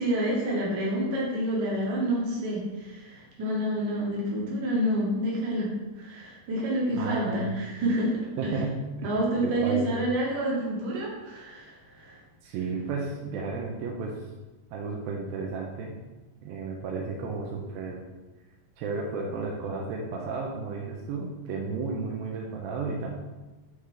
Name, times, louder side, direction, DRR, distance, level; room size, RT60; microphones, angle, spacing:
voice 1, 0.0-5.7 6.0-8.2 9.0-12.2, right 1 dB, 60° right, -4 dB, 2.3 m, -28 dB
voice 2, 6.9-7.6 8.4-9.1 9.4-10.0 12.4-14.2 14.7-15.9 16.4-18.0 18.8-23.1, right 4 dB, 85° right, -1 dB, 2.1 m, -33 dB
8.3 x 3.8 x 3.3 m, 1.2 s
omnidirectional pair, 5.0 m